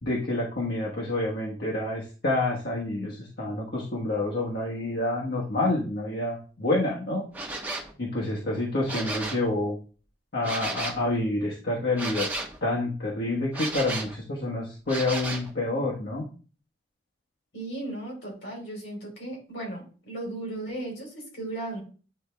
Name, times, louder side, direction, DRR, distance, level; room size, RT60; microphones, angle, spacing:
voice 1, 0.0-7.2 8.0-9.8 10.3-12.3 12.6-16.2, left 2 dB, 65° left, -3 dB, 1.3 m, -28 dB
sound 1, 7.3-7.9 8.7-9.5 10.4-11.0 11.9-12.6 13.5-14.2 14.9-15.5, right 2 dB, 10° right, 1.2 m, -33 dB
voice 2, 17.5-21.8, right 2 dB, 80° left, -1 dB, 3.7 m, -36 dB
8.9 x 3.5 x 3.3 m, 0.37 s
head